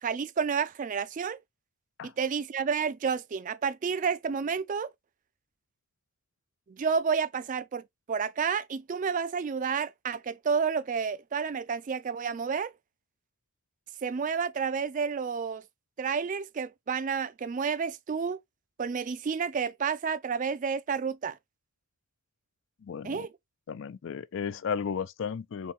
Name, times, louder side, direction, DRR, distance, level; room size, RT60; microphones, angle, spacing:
voice 1, 0.0-1.4 2.0-4.9 6.7-12.7 14.0-15.6 16.0-18.4 18.8-21.4 23.0-23.3, right 6 dB, 35° right, 0.3 m, -30 dB
voice 2, 22.8-23.3 23.7-25.7, left 6 dB, 60° left, 0.4 m, -34 dB
4.4 x 2.6 x 3.6 m
head